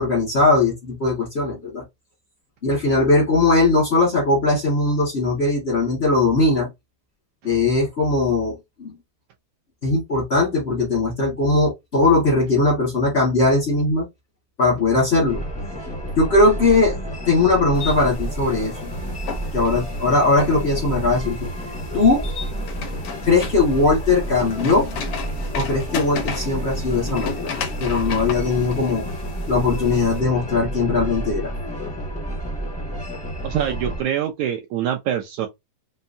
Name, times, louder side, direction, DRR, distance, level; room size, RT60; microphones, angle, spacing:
voice 1, 0.0-1.8 2.6-6.7 7.4-8.9 9.8-14.1 14.6-15.4 16.2-17.0 17.3-18.9 19.5-21.5 21.9-22.3 23.2-24.9 25.5-27.5 27.8-29.0 29.5-31.5, left 3 dB, 50° left, 0.7 m, -19 dB
sound 1, 15.3-34.0, right 1 dB, 10° left, 0.4 m, -30 dB
sound 2, 17.7-30.2, left 6 dB, 90° left, 1.2 m, -34 dB
voice 2, 33.4-35.5, right 10 dB, 80° right, 1.7 m, -24 dB
5.4 x 2.2 x 2.6 m
omnidirectional pair, 3.9 m